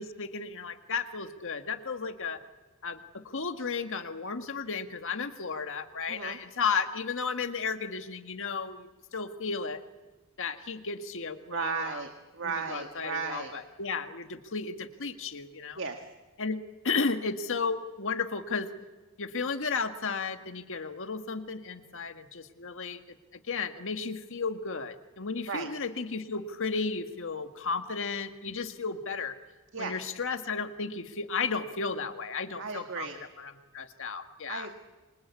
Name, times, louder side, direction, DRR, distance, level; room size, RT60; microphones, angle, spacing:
voice 1, 0.0-2.4 2.8-9.8 10.4-12.0 12.4-15.8 16.4-18.7 19.2-23.0 23.5-29.4 29.8-33.1 33.4-34.7, left 4 dB, 60° left, 7 dB, 1.7 m, -34 dB
voice 2, 6.1-6.4 11.5-13.5 15.8-16.0 25.5-25.7 29.7-29.9 32.6-33.2 34.5-34.7, right 5 dB, 60° right, 5 dB, 1.9 m, -35 dB
28.0 x 25.0 x 8.5 m, 1.3 s
head